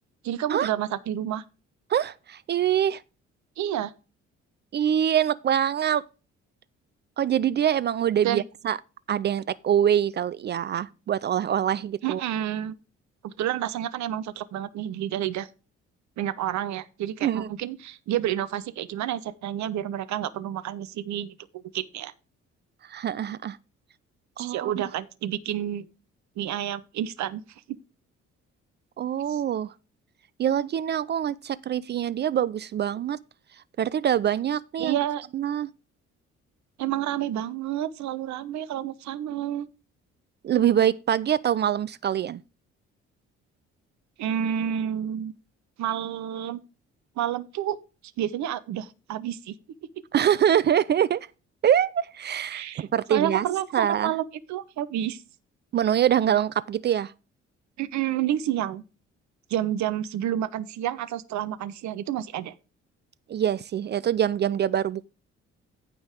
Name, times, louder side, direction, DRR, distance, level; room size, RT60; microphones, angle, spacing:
voice 1, 0.2-1.4 3.6-3.9 8.2-8.4 12.0-12.7 13.2-15.5 16.2-22.1 24.4-25.9 26.4-27.4 29.3-29.4 34.8-35.2 36.8-39.7 44.2-45.3 45.8-46.6 47.2-47.8 48.2-49.6 52.5-55.2 57.8-58.8 59.5-62.5, right 11 dB, 50° right, 0.9 m, -29 dB
voice 2, 1.9-3.0 4.7-6.0 7.2-8.8 9.1-12.2 17.2-17.5 22.9-23.6 24.4-24.7 29.0-29.7 30.4-33.2 33.8-35.0 35.3-35.7 40.4-42.4 50.1-51.3 51.6-53.5 53.7-54.1 55.7-57.1 63.3-65.1, right 10 dB, 30° right, 0.4 m, -24 dB
15.0 x 5.2 x 3.6 m
figure-of-eight pair, 45°, 36 cm